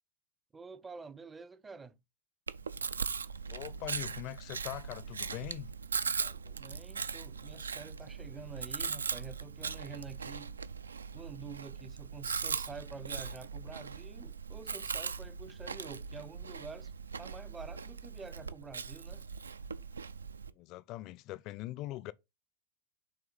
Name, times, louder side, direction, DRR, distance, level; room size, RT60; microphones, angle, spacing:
voice 1, 0.5-2.0 6.2-10.6 11.1-16.9 17.2-19.3, right 5 dB, 15° right, 0.5 m, -48 dB
Chewing mastication, 2.5-20.5, right 5 dB, 75° right, 0.3 m, -39 dB
voice 2, 3.5-5.7 20.5-22.1, left 16 dB, 40° left, 0.5 m, -42 dB
5.7 x 3.6 x 5.1 m
figure-of-eight pair, 90°, 0 cm